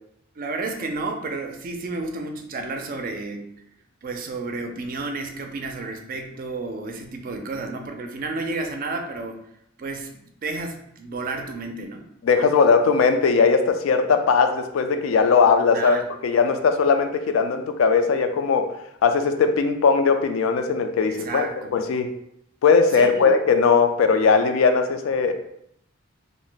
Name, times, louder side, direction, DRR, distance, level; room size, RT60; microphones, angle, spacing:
voice 1, 0.4-3.5 4.0-9.4 9.8-12.1 15.7-16.1 21.1-21.8 22.9-23.4, right 3 dB, 45° right, 5 dB, 0.4 m, -31 dB
voice 2, 12.2-18.7 19.0-22.1 22.6-25.3, left 5 dB, 80° left, 7 dB, 0.4 m, -19 dB
2.5 x 2.0 x 3.8 m, 0.73 s
head